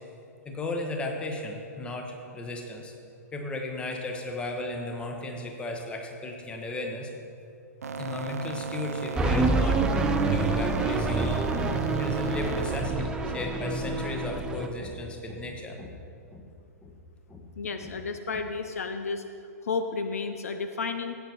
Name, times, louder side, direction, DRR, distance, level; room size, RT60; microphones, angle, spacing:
voice 1, 0.4-2.9 3.3-7.1 8.0-15.9 16.3-16.4 16.8-16.9 17.3-17.4 17.8-17.9, left 2 dB, 10° left, 3 dB, 1.1 m, -35 dB
sound 1, 7.8-12.8, right 6 dB, 65° right, 0.5 m, -36 dB
sound 2, 9.2-14.7, right 3 dB, 10° right, 0.4 m, -27 dB
voice 2, 17.6-19.2 19.6-21.2, left 4 dB, 60° left, 8 dB, 0.6 m, -32 dB
15.5 x 8.7 x 2.9 m, 2.5 s
figure-of-eight pair, 110°, 9 cm